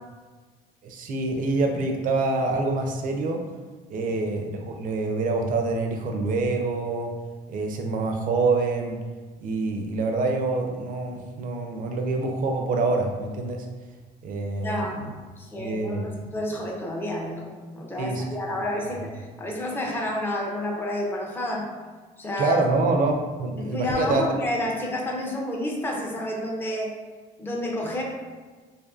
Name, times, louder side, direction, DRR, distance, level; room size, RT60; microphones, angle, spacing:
voice 1, 0.8-3.4 3.9-7.1 7.5-9.0 9.4-13.7 14.2-15.1 15.6-16.2 18.0-18.2 22.4-23.1 23.4-24.3, right 3 dB, 55° right, 3 dB, 0.4 m, -26 dB
voice 2, 14.6-15.0 15.4-21.7 22.2-22.6 23.6-26.9 27.4-28.0, left 1 dB, 15° left, -1 dB, 0.4 m, -30 dB
2.5 x 2.5 x 2.3 m, 1.4 s
cardioid pair, 110°, 17 cm